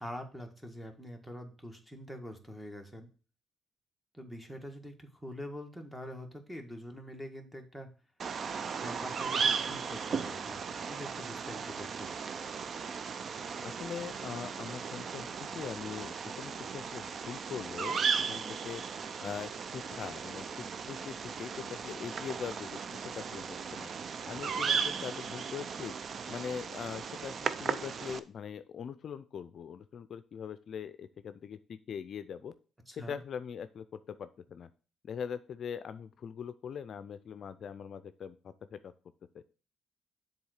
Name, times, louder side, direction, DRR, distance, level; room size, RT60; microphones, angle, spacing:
voice 1, 0.0-3.1 4.1-7.9 8.7-10.6 10.9-12.1 32.9-33.2, equal, 5° right, 4 dB, 1.6 m, -44 dB
Bird vocalization bird call bird song, 8.2-28.2, right 6 dB, 50° right, 0.5 m, -36 dB
voice 2, 13.6-18.0 18.3-18.8 19.2-22.8 23.0-23.9 24.3-25.9 26.3-32.5 33.0-34.7 35.0-38.9 39.3-39.4, left 7 dB, 60° left, 12 dB, 0.4 m, -42 dB
7.1 x 3.9 x 6.4 m, 0.37 s
cardioid pair, 90°, 0 cm